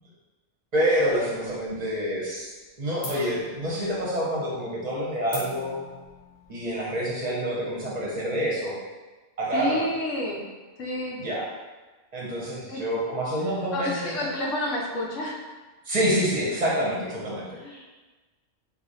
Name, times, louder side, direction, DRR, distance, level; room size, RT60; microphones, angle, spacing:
voice 1, 0.7-2.5 2.8-5.9 6.5-8.8 9.4-9.8 11.2-11.4 12.1-14.2 15.8-17.8, equal, 35° right, -5 dB, 1.0 m, -27 dB
sound 1, 1.1-2.0 2.3-2.7 3.0-8.2, left 2 dB, 45° left, 1.0 m, -43 dB
voice 2, 9.5-10.4 10.8-11.2 12.7-12.8 13.4-15.4 17.3-17.8, left 1 dB, 75° left, -1 dB, 1.0 m, -30 dB
3.3 x 2.6 x 4.0 m, 1.2 s
omnidirectional pair, 1.3 m